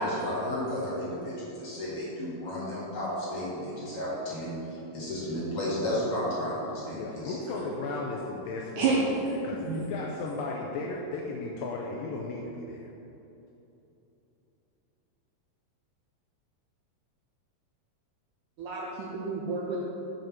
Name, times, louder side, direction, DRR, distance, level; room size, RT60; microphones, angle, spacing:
voice 1, 0.0-7.3, left 1 dB, 45° left, -8 dB, 2.3 m, -33 dB
voice 2, 6.9-12.9, left 3 dB, 80° left, -1 dB, 2.1 m, -35 dB
voice 3, 18.6-19.8, right 4 dB, 80° right, -4 dB, 1.9 m, -29 dB
7.5 x 5.3 x 5.9 m, 2.9 s
omnidirectional pair, 4.5 m